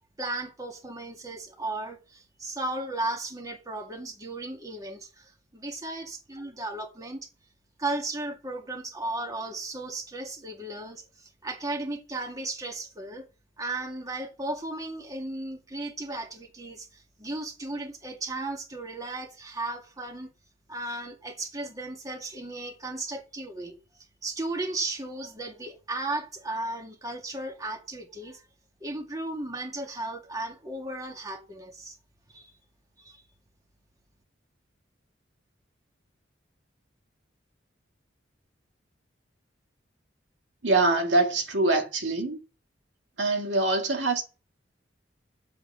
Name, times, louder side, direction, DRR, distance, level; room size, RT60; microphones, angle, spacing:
voice 1, 0.2-7.3 7.8-13.3 13.6-20.3 20.7-23.7 24.2-28.4 28.8-32.0 32.3-32.5 33.0-33.2, right 2 dB, 20° right, 2.1 m, -35 dB
voice 2, 40.6-42.4 43.2-44.2, right 2 dB, 75° right, 2.0 m, -24 dB
7.9 x 7.8 x 6.7 m
head